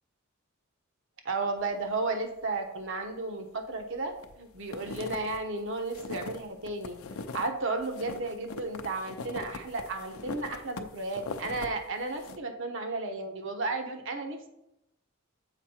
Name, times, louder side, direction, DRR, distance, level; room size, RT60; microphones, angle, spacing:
voice 1, 1.2-4.1 4.4-7.0 7.3-14.5, right 3 dB, 65° right, 5 dB, 1.0 m, -33 dB
sound 1, 3.7-4.3 4.6-7.5 7.8-11.7 12.0-12.4, left 3 dB, 85° left, 0.5 m, -41 dB
7.2 x 4.6 x 4.3 m, 0.84 s
head